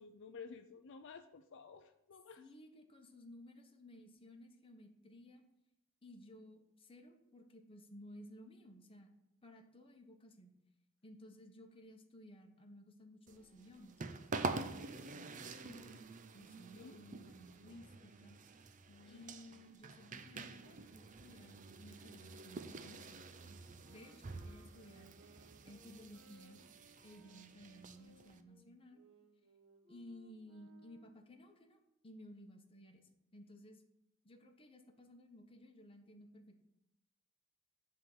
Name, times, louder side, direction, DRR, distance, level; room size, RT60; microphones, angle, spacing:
voice 1, 0.0-2.4 16.7-17.0 18.9-19.4, left 5 dB, 60° left, 7 dB, 0.4 m, -53 dB
voice 2, 2.4-5.4 6.0-9.1 9.4-10.5 11.0-16.0 16.3-18.4 19.0-25.1 25.6-26.6 27.0-29.0 29.9-33.8 34.2-36.6, equal, 25° left, 4 dB, 1.1 m, -57 dB
sound 1, 13.3-28.4, right 3 dB, 40° right, 0.5 m, -47 dB
sound 2, 23.8-31.3, right 2 dB, 80° right, 1.7 m, -65 dB
10.5 x 3.7 x 7.1 m, 0.86 s
head